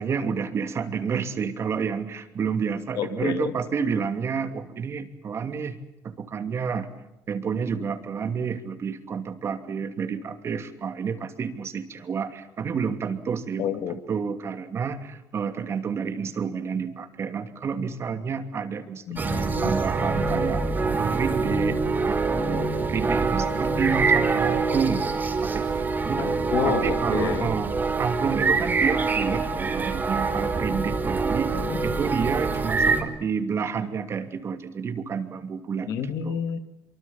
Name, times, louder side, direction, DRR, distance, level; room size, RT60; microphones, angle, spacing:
voice 1, 0.0-5.8 6.0-6.9 7.3-20.6 21.0-21.8 22.1-26.3 26.6-35.9 36.2-36.4, right 6 dB, 45° right, 2.7 m, -29 dB
voice 2, 3.0-3.5 13.6-13.9 19.1-19.7 26.2-27.5 31.5-31.8 35.9-36.6, left 9 dB, 75° left, 2.3 m, -29 dB
sound 1, 19.2-33.0, right 4 dB, 30° right, 3.9 m, -25 dB
24.5 x 24.0 x 7.2 m
cardioid pair, 115°, 6 cm